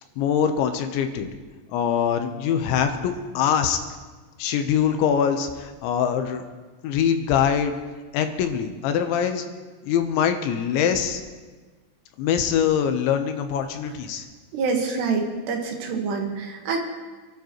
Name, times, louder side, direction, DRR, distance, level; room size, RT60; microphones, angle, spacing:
voice 1, 0.2-1.3 1.7-3.8 4.4-6.4 6.8-7.7 8.1-9.4 9.8-11.2 12.2-14.3, left 8 dB, 85° left, 7 dB, 3.4 m, -23 dB
voice 2, 14.5-16.8, right 4 dB, 70° right, 1 dB, 3.7 m, -26 dB
27.0 x 12.0 x 3.1 m, 1.3 s
omnidirectional pair, 5.2 m